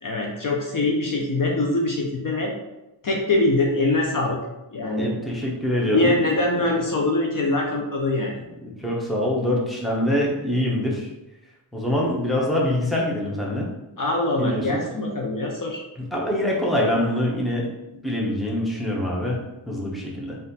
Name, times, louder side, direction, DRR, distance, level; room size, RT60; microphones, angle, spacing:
voice 1, 0.0-2.5 3.0-4.4 4.7-5.1 5.9-8.3 14.0-15.8, left 2 dB, 45° left, 0 dB, 0.6 m, -23 dB
voice 2, 5.0-6.2 6.5-6.8 8.6-11.1 11.7-13.7 14.4-14.8 16.0-17.7 18.0-20.4, left 1 dB, ahead, -3 dB, 0.8 m, -24 dB
4.1 x 2.6 x 4.0 m, 0.94 s
wide cardioid pair, 125°, 48 cm